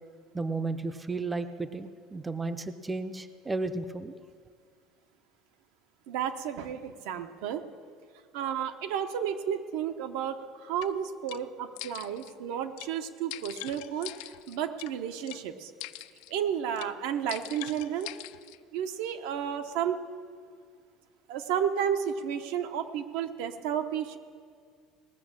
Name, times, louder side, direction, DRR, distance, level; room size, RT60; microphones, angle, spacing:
voice 1, 0.3-4.2, right 3 dB, 10° right, 10 dB, 0.4 m, -33 dB
voice 2, 6.1-7.6 8.3-15.7 16.3-18.1 18.7-20.0 21.3-24.2, right 8 dB, 85° right, 7 dB, 0.9 m, -32 dB
sound 1, 10.8-10.9 11.3-11.4 11.8-12.3 12.8-12.9 13.3-14.9 15.3-15.4 15.8-16.3 16.8-16.9 17.3-18.6, left 17 dB, 80° left, 0.4 m, -42 dB
19.0 x 6.5 x 7.3 m, 2.1 s
cardioid pair, 155°, 0 cm